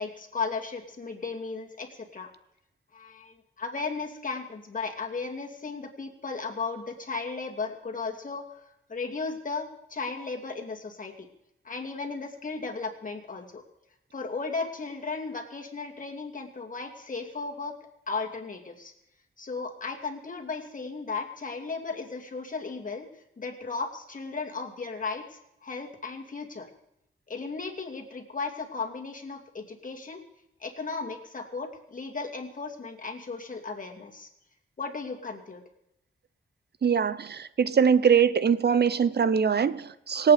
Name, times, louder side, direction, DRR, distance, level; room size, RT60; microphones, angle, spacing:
voice 1, 0.0-2.3 2.9-11.3 11.6-13.6 14.1-17.7 18.1-18.9 19.4-23.0 23.4-26.7 27.3-30.2 30.6-34.3 34.8-35.6, left 4 dB, 40° left, 2 dB, 2.6 m, -35 dB
voice 2, 36.8-40.3, right 7 dB, 50° right, 16 dB, 0.7 m, -22 dB
26.0 x 8.8 x 5.1 m, 0.82 s
wide cardioid pair, 110°, 21 cm